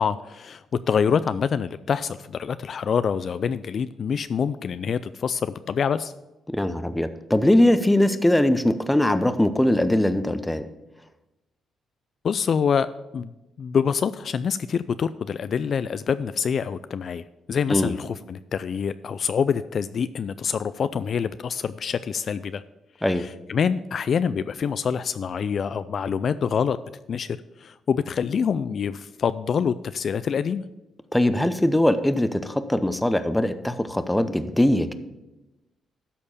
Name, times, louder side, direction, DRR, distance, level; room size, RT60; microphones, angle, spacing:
voice 1, 0.0-6.1 12.2-12.9 13.1-13.3 13.6-22.6 23.1-26.8 27.1-30.6, left 6 dB, 50° left, 14 dB, 0.3 m, -26 dB
voice 2, 6.5-10.7 17.7-17.9 23.0-23.3 31.1-34.9, left 1 dB, 10° left, 12 dB, 0.7 m, -21 dB
12.5 x 4.4 x 7.0 m, 1.0 s
cardioid pair, 90°, 0 cm